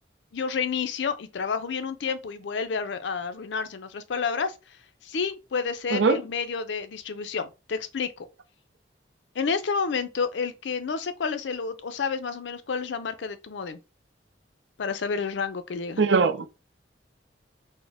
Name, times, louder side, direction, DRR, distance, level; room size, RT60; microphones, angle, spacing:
voice 1, 0.3-4.5 5.0-8.3 9.4-13.8 14.8-16.0, left 5 dB, 75° left, 0.5 m, -30 dB
voice 2, 5.9-6.2 16.0-16.5, right 4 dB, 75° right, 0.5 m, -21 dB
4.2 x 2.1 x 3.4 m
head